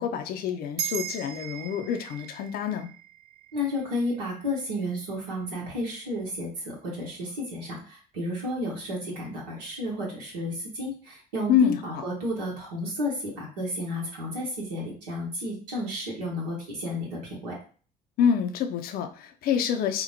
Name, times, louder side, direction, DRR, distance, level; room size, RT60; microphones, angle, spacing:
voice 1, 0.0-2.9 11.5-12.0 18.2-20.0, left 8 dB, 45° left, 6 dB, 0.5 m, -26 dB
sound 1, 0.8-5.5, right 9 dB, 35° right, 0.4 m, -39 dB
voice 2, 3.5-17.5, left 1 dB, 75° right, -4 dB, 0.9 m, -32 dB
4.3 x 2.1 x 2.7 m, 0.41 s
figure-of-eight pair, 55°, 21 cm